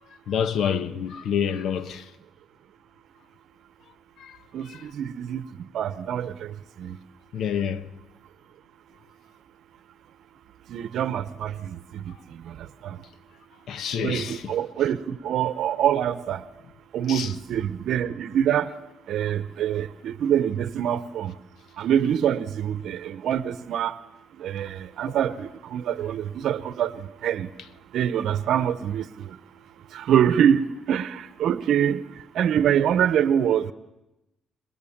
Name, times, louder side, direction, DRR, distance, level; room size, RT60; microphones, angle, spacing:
voice 1, 0.3-2.1 4.2-4.4 4.6-4.8 7.3-7.9 13.7-14.5 17.1-17.3 25.1-25.2, left 8 dB, 75° left, 1.2 m, -28 dB
voice 2, 4.5-5.4 5.7-6.3 6.8-6.9 10.7-11.8 12.8-13.0 14.0-16.4 16.9-18.7 19.1-21.3 21.8-23.9 24.4-26.9 27.2-27.5 27.9-29.1 29.9-32.0 32.3-33.7, right 9 dB, 75° right, 0.9 m, -24 dB
26.5 x 21.5 x 7.3 m
cardioid pair, 90°, 0 cm